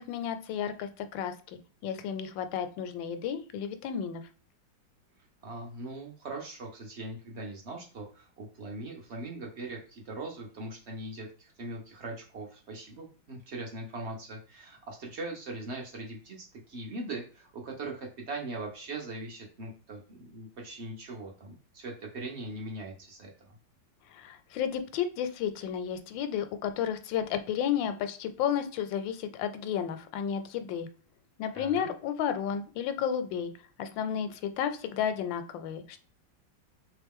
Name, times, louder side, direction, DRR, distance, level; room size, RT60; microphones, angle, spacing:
voice 1, 0.0-4.2 24.1-30.9 31.4-33.5 33.8-36.0, left 8 dB, 85° left, 10 dB, 1.3 m, -32 dB
voice 2, 5.4-23.6 31.5-31.9, right 2 dB, 50° right, 1 dB, 0.8 m, -40 dB
3.5 x 3.1 x 3.5 m, 0.40 s
omnidirectional pair, 2.0 m